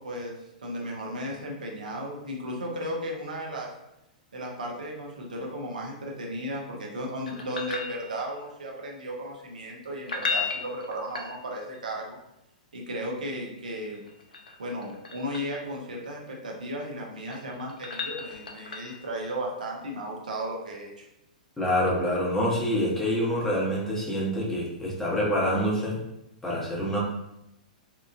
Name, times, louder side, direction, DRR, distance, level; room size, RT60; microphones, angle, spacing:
voice 1, 0.0-3.7 4.3-12.2 12.7-14.0 14.6-21.1, equal, 70° right, -1 dB, 0.6 m, -35 dB
sound 1, 7.3-8.5 10.0-11.8 13.9-15.6 17.0-19.1 21.8-21.9, left 4 dB, 75° left, 0.4 m, -35 dB
voice 2, 21.6-26.0 26.4-27.0, equal, 10° left, -6 dB, 0.8 m, -26 dB
2.8 x 2.2 x 2.5 m, 0.85 s
figure-of-eight pair, 105°, 4 cm